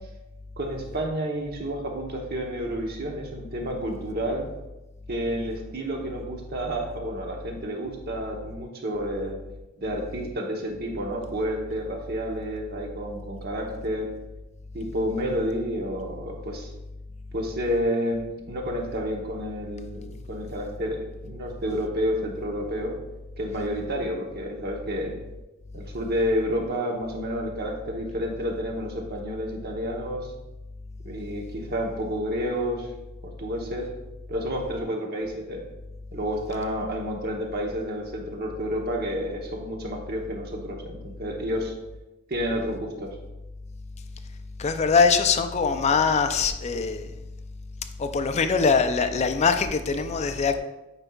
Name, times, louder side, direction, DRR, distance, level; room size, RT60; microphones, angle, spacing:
voice 1, 0.6-4.5 5.1-9.3 9.8-14.1 14.7-16.7 17.3-23.0 23.4-25.2 25.7-30.3 31.0-32.9 33.2-33.9 34.3-35.6 36.1-41.7 42.3-43.2, equal, 50° right, 1 dB, 0.9 m, -30 dB
voice 2, 44.6-47.1 48.0-50.6, left 5 dB, 35° left, 7 dB, 0.4 m, -22 dB
8.9 x 4.4 x 2.3 m, 1.0 s
head